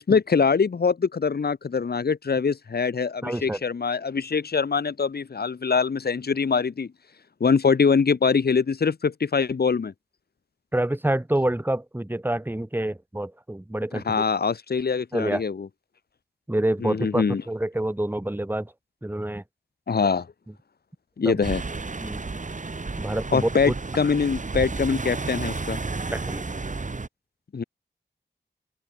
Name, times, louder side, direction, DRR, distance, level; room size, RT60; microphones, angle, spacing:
voice 1, 0.0-6.9 7.4-9.9 13.9-15.7 16.8-17.4 19.9-20.3 21.2-21.6 23.3-25.8 27.5-27.6, left 5 dB, 60° left, 1.0 m, -23 dB
voice 2, 3.2-3.6 10.7-14.2 15.1-15.4 16.5-18.7 19.0-19.4 21.2-21.4 22.0-22.2 23.0-23.7 26.1-26.5, right 1 dB, 10° right, 1.5 m, -27 dB
sound 1, 21.4-27.1, right 3 dB, 40° right, 1.9 m, -32 dB
open air
cardioid pair, 55°, 19 cm